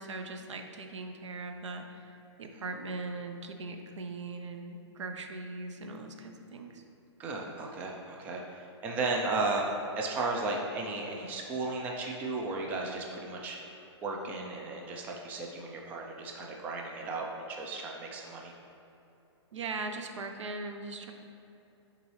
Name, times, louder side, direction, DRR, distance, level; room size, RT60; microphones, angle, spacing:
voice 1, 0.0-6.8 19.5-21.1, right 3 dB, 90° right, 5 dB, 0.7 m, -40 dB
voice 2, 7.2-9.7 10.0-18.5, right 3 dB, 10° right, 0 dB, 0.3 m, -35 dB
8.3 x 3.9 x 3.1 m, 2.9 s
hypercardioid pair, 160°, 15 cm